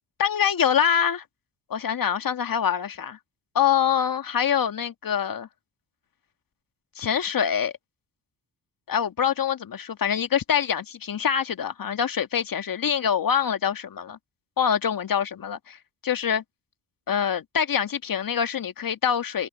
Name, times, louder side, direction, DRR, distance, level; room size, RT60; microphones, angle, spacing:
voice 1, 0.2-1.2 1.7-3.2 3.6-5.5 7.0-7.7 8.9-14.2 14.6-16.4 17.1-19.5, left 8 dB, 45° left, 1.9 m, -25 dB
hypercardioid pair, 45°, 46 cm